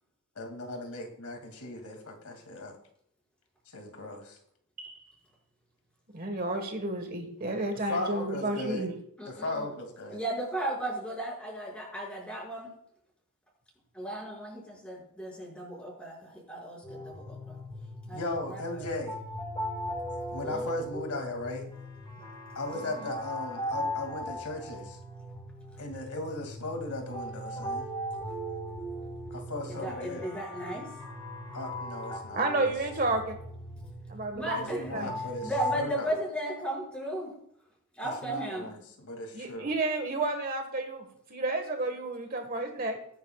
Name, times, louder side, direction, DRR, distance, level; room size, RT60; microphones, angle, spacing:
voice 1, 0.4-2.8 3.7-4.4 7.9-8.9 9.2-10.2 18.1-19.2 20.1-21.7 22.6-25.0 25.8-27.9 29.3-30.3 31.5-32.7 34.6-36.1 38.0-39.7, left 2 dB, 85° left, 3 dB, 2.5 m, -37 dB
voice 2, 6.1-8.9 32.3-33.4 34.1-35.1 39.3-43.0, right 2 dB, 40° right, 5 dB, 1.5 m, -31 dB
voice 3, 9.2-9.7 10.1-12.7 13.9-17.6 18.1-18.9 20.4-20.7 22.7-23.1 29.7-30.9 34.3-35.1 35.4-37.3 38.0-38.7, right 1 dB, 5° left, -3 dB, 5.9 m, -35 dB
sound 1, 16.8-35.8, equal, 20° left, 5.7 m, -38 dB
21.0 x 10.5 x 2.4 m, 0.68 s
head